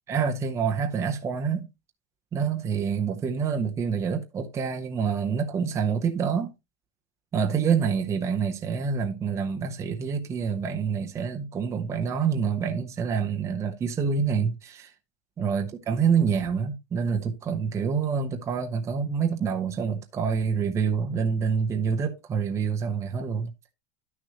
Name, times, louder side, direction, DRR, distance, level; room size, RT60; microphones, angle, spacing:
voice 1, 0.1-1.7 2.3-6.5 7.3-14.9 15.4-23.5, right 6 dB, 15° right, 0.7 m, -27 dB
11.5 x 6.2 x 2.9 m
supercardioid pair, 175°, 19 cm